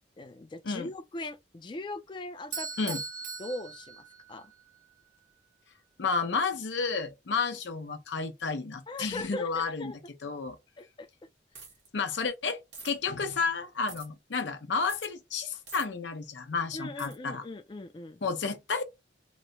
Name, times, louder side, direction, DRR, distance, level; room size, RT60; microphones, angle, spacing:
voice 1, 0.2-2.7 3.4-4.0 4.3-4.5 8.9-10.0 10.8-11.1 16.7-18.2, left 2 dB, 25° left, 0.4 m, -39 dB
Bell / Doorbell, 2.5-4.6, right 5 dB, 45° right, 0.5 m, -39 dB
voice 2, 6.0-9.9 10.2-10.6 11.9-17.4 18.2-18.8, left 4 dB, 80° left, 0.6 m, -31 dB
sound 1, 11.5-11.9 12.7-12.9 13.9-14.1 14.9-15.1 15.7-15.9 17.0-17.2, right 4 dB, 75° right, 1.1 m, -46 dB
3.0 x 2.1 x 2.5 m
head